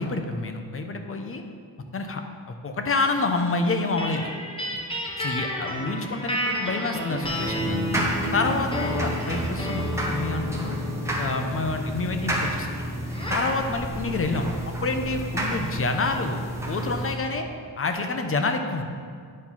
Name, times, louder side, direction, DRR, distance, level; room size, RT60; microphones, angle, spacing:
voice 1, 0.0-1.4 1.9-2.2 2.5-4.3 5.2-7.8 8.3-10.8 11.2-12.7 13.3-16.4 16.7-17.5 17.8-18.8, left 3 dB, 30° left, 5 dB, 0.7 m, -28 dB
sound 1, 4.0-13.5, equal, 15° left, 1.1 m, -31 dB
sound 2, 7.2-17.1, right 1 dB, 5° right, 1.3 m, -31 dB
9.5 x 4.8 x 5.5 m, 2.1 s
wide cardioid pair, 130°, 42 cm